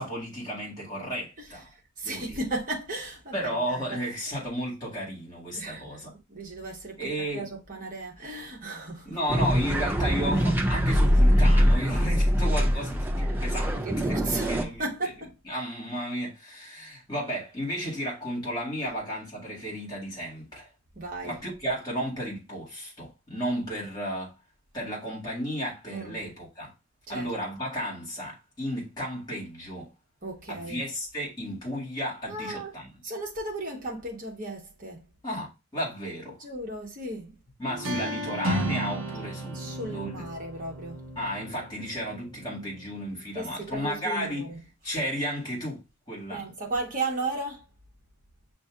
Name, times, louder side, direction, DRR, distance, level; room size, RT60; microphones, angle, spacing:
voice 1, 0.0-1.7 2.0-2.4 3.3-6.1 7.0-7.5 9.0-15.1 15.4-20.7 21.2-24.3 24.7-26.7 27.1-29.9 30.5-32.9 35.2-36.4 37.6-40.2 41.2-44.5 44.8-46.5, equal, 20° left, 2.2 m, -33 dB
voice 2, 2.0-3.8 5.6-5.8 6.3-6.9 7.3-9.2 13.3-13.4 13.8-15.3 20.9-21.4 25.9-26.2 27.1-27.3 30.2-30.8 32.3-32.7 33.0-35.0 36.4-37.3 37.9-38.0 39.5-41.0 43.3-44.6 46.3-47.6, right 2 dB, 35° right, 1.2 m, -35 dB
sound 1, 9.3-14.6, equal, 10° right, 0.3 m, -23 dB
sound 2, 37.7-43.3, right 1 dB, 60° right, 0.9 m, -34 dB
6.1 x 2.7 x 2.4 m
head